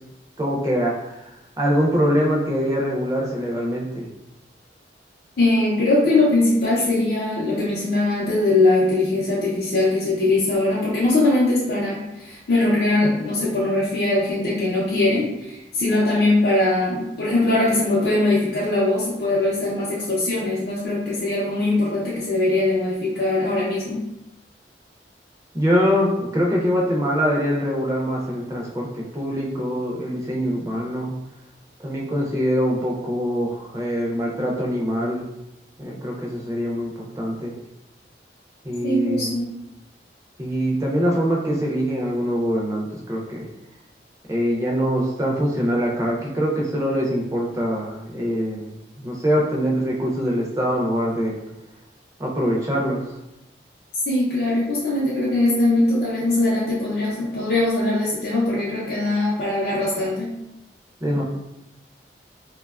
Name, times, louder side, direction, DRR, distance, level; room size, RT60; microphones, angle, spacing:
voice 1, 0.4-1.3 1.6-4.1 25.5-31.2 31.8-35.3 35.8-37.5 38.6-39.3 40.4-43.5 44.3-51.4 52.2-53.2 61.0-61.2, equal, 20° right, -3 dB, 0.4 m, -23 dB
voice 2, 5.4-24.0 38.8-39.5 54.1-60.4, left 2 dB, 60° left, -7 dB, 0.5 m, -21 dB
2.8 x 2.1 x 2.3 m, 0.89 s
head